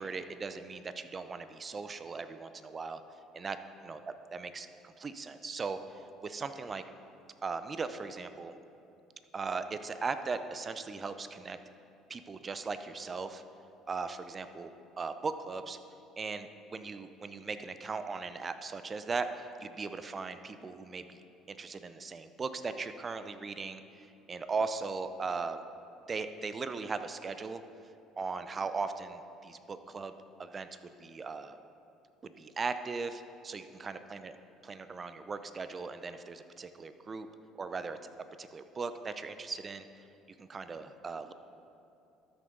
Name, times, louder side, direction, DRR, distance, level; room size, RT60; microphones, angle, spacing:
voice 1, 0.0-3.0 3.3-4.0 4.3-5.8 6.2-6.8 7.4-8.5 9.3-11.6 12.1-13.4 13.9-14.7 15.0-15.8 16.2-21.2 21.5-25.6 26.1-27.6 28.2-30.1 30.4-30.7 31.0-31.6 32.2-34.3 34.7-37.3 37.6-38.0 38.4-39.9 40.4-41.3, right 4 dB, 35° right, 10 dB, 0.6 m, -38 dB
13.5 x 6.4 x 3.9 m, 2.7 s
hypercardioid pair, 65°, 0 cm